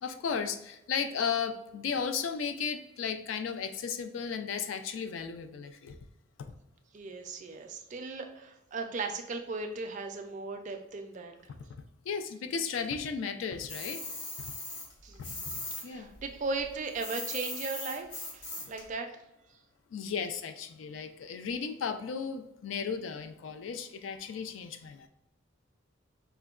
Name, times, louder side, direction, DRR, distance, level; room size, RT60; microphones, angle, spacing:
voice 1, 0.0-6.0 12.1-14.0 15.2-15.5 15.8-16.1 18.6-18.7 19.9-25.1, left 6 dB, 85° left, 9 dB, 0.3 m, -35 dB
voice 2, 6.9-11.3 15.0-15.5 15.8-19.1, right 3 dB, 40° right, 5 dB, 0.3 m, -37 dB
sound 1, 13.7-15.8 16.1-18.8, left 2 dB, 60° left, 1.0 m, -39 dB
4.4 x 2.1 x 2.3 m, 0.89 s
head